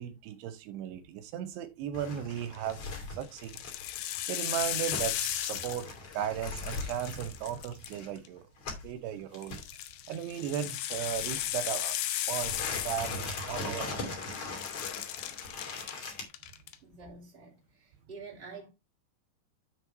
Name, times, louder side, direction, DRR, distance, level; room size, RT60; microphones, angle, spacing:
voice 1, 0.0-2.8 3.1-3.6 4.3-5.9 6.1-8.4 8.8-9.6 10.1-12.0 12.3-14.2, right 10 dB, 80° right, 2.8 m, -36 dB
sound 1, 1.9-9.0 9.3-9.6 11.2-11.8 12.3-16.2, left 3 dB, 40° left, 3.1 m, -40 dB
sound 2, 2.6-2.9 3.4-6.1 6.4-8.3 9.4-14.0 14.2-15.9 16.3-16.8, left 13 dB, 75° left, 2.1 m, -36 dB
voice 2, 16.8-18.7, right 4 dB, 15° right, 2.7 m, -48 dB
9.7 x 4.0 x 4.5 m
omnidirectional pair, 4.8 m